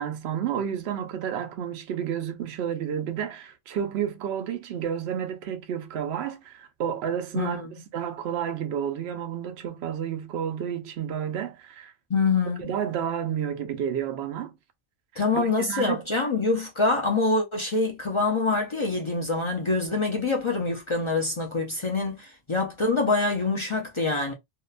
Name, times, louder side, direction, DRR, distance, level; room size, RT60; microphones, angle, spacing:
voice 1, 0.0-11.9 12.6-14.5 15.1-16.0, right 8 dB, 85° right, 0.8 m, -31 dB
voice 2, 7.4-7.7 12.1-12.7 15.2-24.3, left 3 dB, 40° left, 0.4 m, -25 dB
2.7 x 2.2 x 2.3 m
omnidirectional pair, 1.0 m